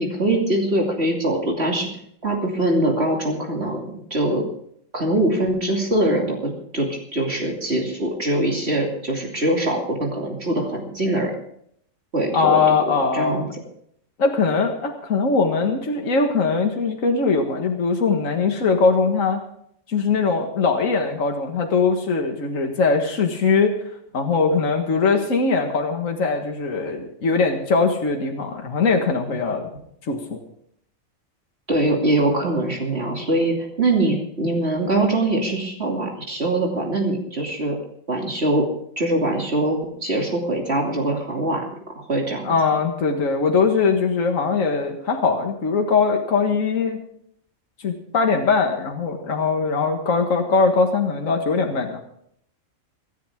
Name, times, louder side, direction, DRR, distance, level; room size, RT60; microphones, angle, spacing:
voice 1, 0.0-1.9 2.2-4.4 4.9-11.3 12.1-13.4 31.7-37.8 38.1-38.6 39.0-41.6 42.1-42.5, right 1 dB, 50° right, 0 dB, 3.0 m, -23 dB
voice 2, 12.3-13.4 14.2-19.4 19.9-23.7 24.1-29.7 30.0-30.4 42.4-47.0 47.8-52.0, left 4 dB, 70° left, 3 dB, 2.0 m, -21 dB
25.5 x 11.0 x 3.6 m, 0.68 s
omnidirectional pair, 1.4 m